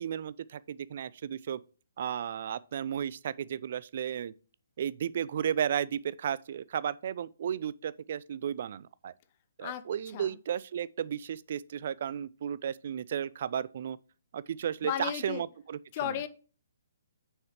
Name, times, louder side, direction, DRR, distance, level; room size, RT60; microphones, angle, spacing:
voice 1, 0.0-1.6 2.0-4.3 4.8-9.1 9.6-14.0 14.3-16.1, right 9 dB, 45° right, 0.3 m, -34 dB
voice 2, 14.8-15.4 15.9-16.3, left 10 dB, 30° left, 0.6 m, -34 dB
6.4 x 4.6 x 4.7 m
figure-of-eight pair, 130°, 0 cm